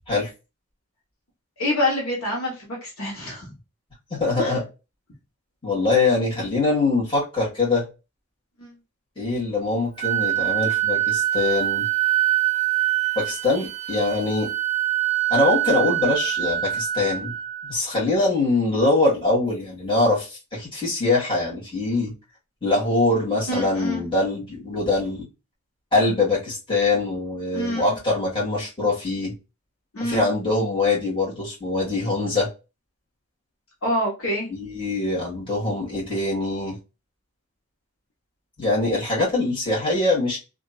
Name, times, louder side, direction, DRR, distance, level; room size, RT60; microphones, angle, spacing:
voice 1, 1.6-3.5 4.4-4.5 8.6-8.7 23.5-24.0 27.5-28.0 29.9-30.3 33.8-34.5, left 1 dB, 65° left, -3 dB, 1.1 m, -26 dB
voice 2, 4.1-4.6 5.6-7.8 9.2-11.9 13.1-14.5 15.3-17.3 17.7-22.1 22.6-25.3 25.9-29.3 30.0-32.5 34.5-36.8 38.6-40.4, left 2 dB, 25° left, -5 dB, 1.6 m, -23 dB
Wind instrument woodwind instrument, 10.0-17.7, right 14 dB, 30° right, 0.5 m, -24 dB
2.9 x 2.5 x 2.3 m, 0.28 s
head